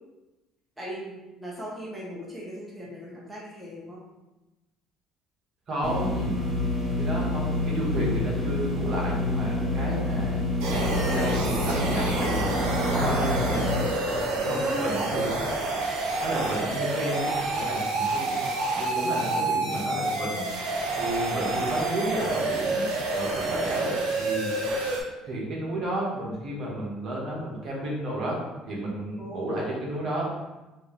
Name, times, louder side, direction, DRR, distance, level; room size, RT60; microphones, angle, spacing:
voice 1, 0.8-4.0 14.5-15.1 19.2-19.7 29.2-29.6, equal, 10° right, -6 dB, 1.1 m, -38 dB
voice 2, 5.7-6.4 7.0-10.4 10.7-12.4 12.9-13.7 14.4-15.5 16.2-20.4 20.9-22.9 23.1-23.9 24.2-24.6 25.2-28.4 28.6-30.3, right 1 dB, 55° right, -4 dB, 1.4 m, -31 dB
sound 1, 5.8-13.8, left 2 dB, 15° left, 1.5 m, -28 dB
sound 2, 10.6-25.0, right 2 dB, 90° right, 0.8 m, -28 dB
4.3 x 2.8 x 3.3 m, 1.1 s
cardioid pair, 100°, 0 cm